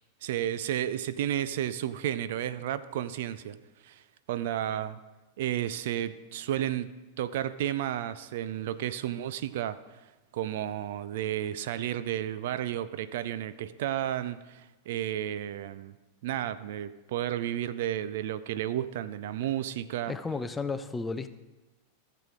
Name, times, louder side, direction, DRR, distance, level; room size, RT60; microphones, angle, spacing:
voice 1, 0.2-3.6 3.8-4.0 4.3-5.0 5.4-6.9 7.2-9.8 10.3-15.9 16.2-20.1, right 11 dB, 55° right, 14 dB, 0.4 m, -32 dB
voice 2, 20.1-21.3, left 4 dB, 15° left, 12 dB, 0.5 m, -33 dB
15.0 x 7.6 x 3.7 m, 1.1 s
figure-of-eight pair, 90°, 0 cm